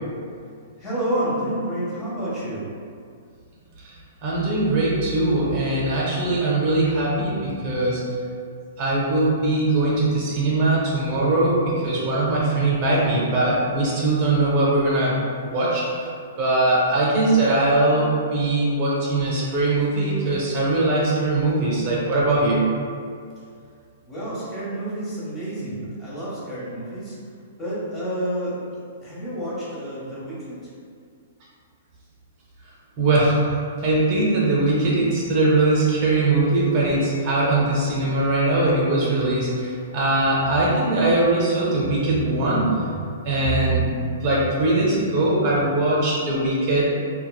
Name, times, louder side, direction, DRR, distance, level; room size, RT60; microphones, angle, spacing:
voice 1, 0.8-2.7 24.0-27.2 27.6-30.7, right 1 dB, 20° left, -8 dB, 0.8 m, -29 dB
voice 2, 4.2-8.0 8.8-15.2 15.4-16.1 16.4-22.6 33.0-33.5 33.8-43.9 44.2-47.0, right 2 dB, 40° right, -5 dB, 0.6 m, -21 dB
3.0 x 2.2 x 2.2 m, 2.3 s
hypercardioid pair, 150°, 0 cm